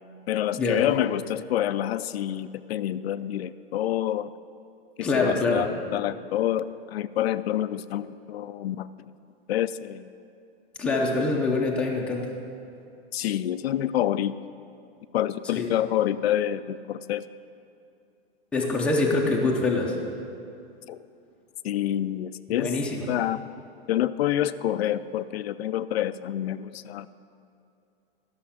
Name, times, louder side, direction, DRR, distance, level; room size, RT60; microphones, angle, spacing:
voice 1, 0.3-4.3 5.0-8.9 9.5-10.1 13.1-14.3 15.1-17.2 20.9-21.0 21.6-22.7 23.1-23.4 23.9-27.1, left 12 dB, 80° left, 13 dB, 0.5 m, -27 dB
voice 2, 5.0-5.7 10.8-12.2 15.4-15.7 18.5-20.0 22.5-23.1, left 3 dB, 5° left, -1 dB, 0.5 m, -25 dB
12.5 x 6.4 x 5.7 m, 2.6 s
hypercardioid pair, 160°, 31 cm